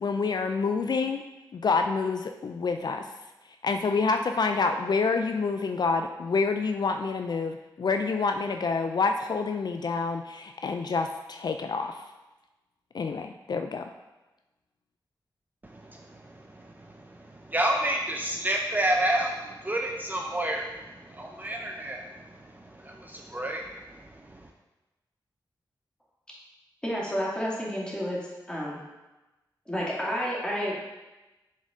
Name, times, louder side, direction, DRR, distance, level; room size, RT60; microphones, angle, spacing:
voice 1, 0.0-1.2 1.5-3.1 3.6-12.0 12.9-13.9, left 4 dB, 60° left, 6 dB, 0.3 m, -27 dB
voice 2, 15.6-24.5, right 1 dB, 20° right, 1 dB, 0.6 m, -31 dB
voice 3, 26.8-28.8 29.7-30.8, equal, 10° left, -6 dB, 2.2 m, -30 dB
7.3 x 3.9 x 3.7 m, 1.1 s
cardioid pair, 50°, 8 cm